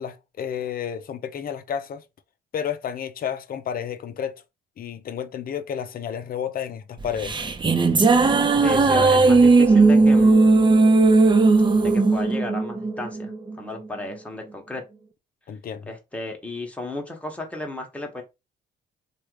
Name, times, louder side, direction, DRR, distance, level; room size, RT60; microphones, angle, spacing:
voice 1, 0.0-2.0 2.5-4.3 4.8-7.3 15.5-15.9, left 8 dB, 50° left, 0.5 m, -31 dB
sound 1, 7.0-13.6, right 3 dB, 25° right, 0.5 m, -17 dB
voice 2, 8.6-10.6 11.7-14.8 15.9-18.2, left 2 dB, 5° left, 1.0 m, -34 dB
3.2 x 2.4 x 3.1 m
cardioid pair, 90°, 20 cm